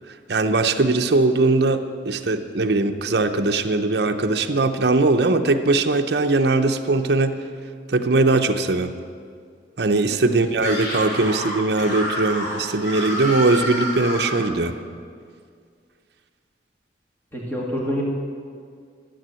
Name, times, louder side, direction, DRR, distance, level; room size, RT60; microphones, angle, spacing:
voice 1, 0.3-7.4 7.9-8.9 9.8-14.7, right 3 dB, 65° right, 6 dB, 0.7 m, -20 dB
Screaming, 10.5-14.5, equal, 60° left, 3.3 m, -28 dB
voice 2, 17.3-18.0, equal, 10° left, -3 dB, 2.0 m, -27 dB
13.0 x 7.6 x 7.7 m, 2.1 s
head